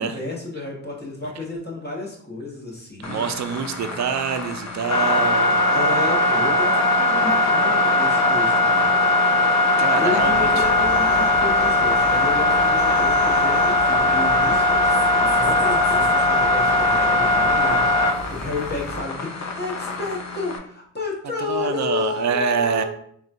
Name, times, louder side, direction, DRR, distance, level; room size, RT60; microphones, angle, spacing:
voice 1, 0.0-3.3 5.7-8.9 10.0-22.8, left 3 dB, 30° left, -2 dB, 1.0 m, -31 dB
sound 1, 3.0-20.6, left 2 dB, 50° left, 0.6 m, -20 dB
voice 2, 3.0-5.6 9.8-10.6 21.5-22.8, right 6 dB, 55° right, 8 dB, 0.4 m, -26 dB
sound 2, 10.2-19.0, equal, 90° left, 0.9 m, -38 dB
3.5 x 2.3 x 2.6 m, 0.64 s
cardioid pair, 60°, 35 cm